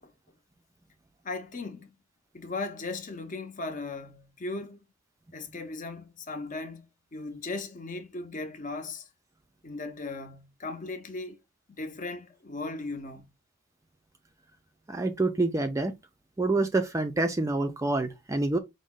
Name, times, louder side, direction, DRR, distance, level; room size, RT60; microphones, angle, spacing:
voice 1, 1.2-1.9 2.3-4.8 5.3-6.9 7.1-9.1 9.6-11.4 11.8-13.3, left 3 dB, 35° left, 0.6 m, -37 dB
voice 2, 14.9-15.9 16.4-18.6, right 2 dB, 15° right, 0.3 m, -27 dB
5.1 x 2.0 x 3.6 m
head